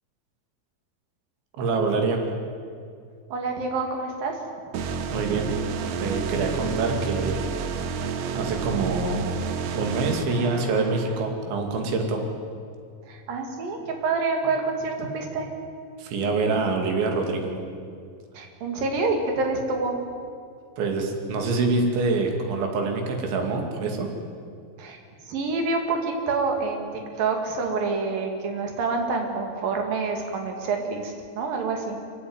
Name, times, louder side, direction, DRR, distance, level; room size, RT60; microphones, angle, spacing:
voice 1, 1.6-2.2 5.1-5.5 6.0-7.5 8.3-9.4 9.7-12.2 16.0-17.5 20.8-24.1, right 3 dB, 90° right, 3 dB, 4.8 m, -25 dB
voice 2, 3.3-4.5 4.9-5.0 13.1-15.5 18.3-20.0 24.8-32.0, right 4 dB, 55° right, 3 dB, 3.9 m, -27 dB
sound 1, 4.7-11.2, right 6 dB, 70° right, 3.0 m, -30 dB
24.5 x 16.0 x 9.6 m, 2.3 s
omnidirectional pair, 5.1 m